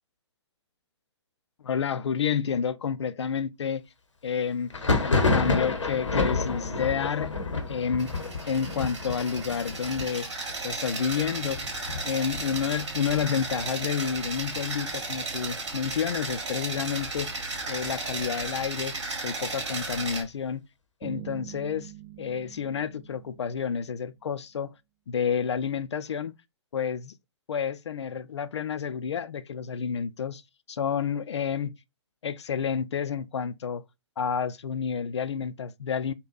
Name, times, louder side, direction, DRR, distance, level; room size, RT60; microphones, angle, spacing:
voice 1, 1.6-3.9 4.2-4.7 5.0-10.3 10.6-11.6 12.0-17.4 17.7-19.0 19.2-20.6 21.0-21.9 22.2-24.7 25.1-26.3 26.7-27.1 27.5-30.4 30.7-31.7 32.2-33.8 34.2-36.1, left 7 dB, 65° left, 0.4 m, -30 dB
Thunder, 4.7-14.2 14.5-15.2 15.4-16.4 16.8-18.5, left 3 dB, 85° left, 0.8 m, -30 dB
sound 1, 8.0-20.2, right 3 dB, 65° right, 1.2 m, -35 dB
sound 2, 21.0-24.0, right 11 dB, 35° right, 0.8 m, -44 dB
3.9 x 2.2 x 2.4 m
figure-of-eight pair, 125°, 15 cm